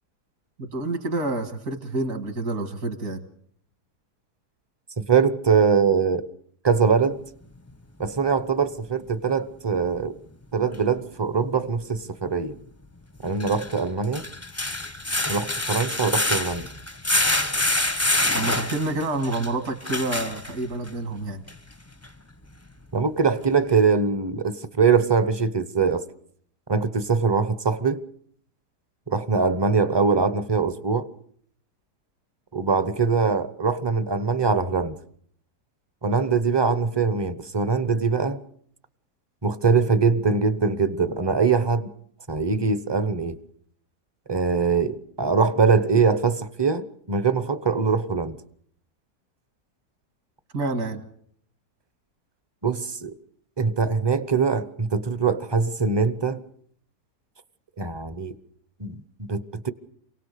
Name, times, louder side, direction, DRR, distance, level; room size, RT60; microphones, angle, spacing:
voice 1, 0.6-3.2 18.3-21.4 50.5-51.0, right 2 dB, 65° right, 2.4 m, -28 dB
voice 2, 5.0-6.3 6.6-7.2 8.0-10.2 10.5-12.6 13.2-14.3 15.3-16.7 22.9-26.0 26.7-28.0 29.1-31.1 32.5-35.0 36.0-38.4 39.4-41.9 42.3-43.4 44.3-48.4 52.6-53.2 53.6-56.4 57.8-58.3 58.8-59.7, right 5 dB, 20° right, 0.7 m, -22 dB
sound 1, 10.7-10.8 13.3-20.9 21.5-21.6 22.0-22.1, left 2 dB, 15° left, 0.6 m, -26 dB
28.0 x 18.0 x 6.7 m
omnidirectional pair, 1.7 m